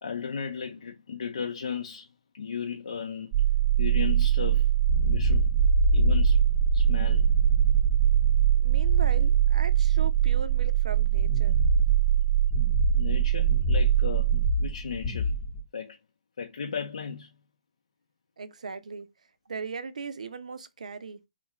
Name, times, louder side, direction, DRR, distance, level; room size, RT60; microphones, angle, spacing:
voice 1, 0.0-2.1 2.3-3.5 3.8-4.7 5.0-5.5 5.9-6.4 6.7-7.3 13.0-14.3 14.6-15.4 15.7-16.0 16.4-17.3, left 6 dB, 65° left, 0.5 m, -35 dB
sound 1, 3.3-14.5, right 13 dB, 30° right, 0.7 m, -23 dB
sound 2, 4.9-15.6, left 3 dB, 25° left, 0.8 m, -29 dB
voice 2, 8.6-11.6 18.4-19.1 19.5-21.2, right 5 dB, 65° right, 0.5 m, -38 dB
3.7 x 2.4 x 3.0 m
figure-of-eight pair, 135°, 4 cm